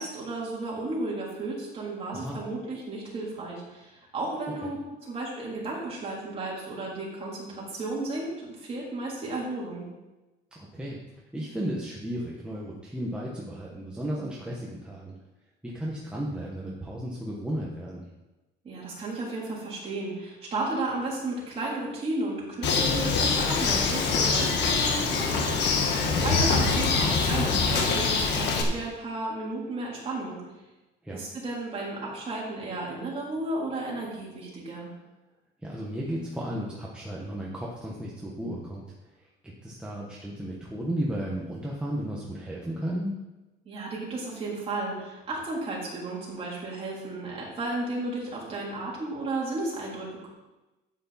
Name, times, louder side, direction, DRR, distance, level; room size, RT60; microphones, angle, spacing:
voice 1, 0.0-4.8 5.0-9.9 18.6-25.5 26.2-30.4 31.1-34.9 43.6-50.3, right 2 dB, 30° right, -4 dB, 3.4 m, -33 dB
voice 2, 10.5-11.0 11.3-15.1 15.7-18.1 26.0-26.4 31.0-31.2 35.6-38.8 39.6-43.1, equal, 5° right, -5 dB, 1.3 m, -34 dB
Bird, 22.6-28.6, left 4 dB, 65° left, 1.6 m, -24 dB
12.0 x 8.4 x 4.2 m, 1.1 s
cardioid pair, 170°, 19 cm